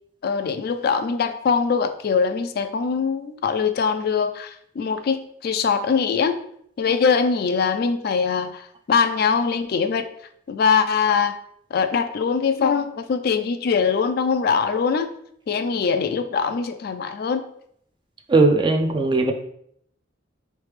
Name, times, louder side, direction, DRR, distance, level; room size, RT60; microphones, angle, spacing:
voice 1, 0.2-6.4 6.8-10.1 10.5-11.4 11.7-15.1 15.5-17.5, left 5 dB, 50° left, 9 dB, 0.3 m, -22 dB
voice 2, 18.3-19.3, right 3 dB, 25° right, 4 dB, 0.4 m, -18 dB
4.1 x 3.2 x 3.2 m, 0.69 s
head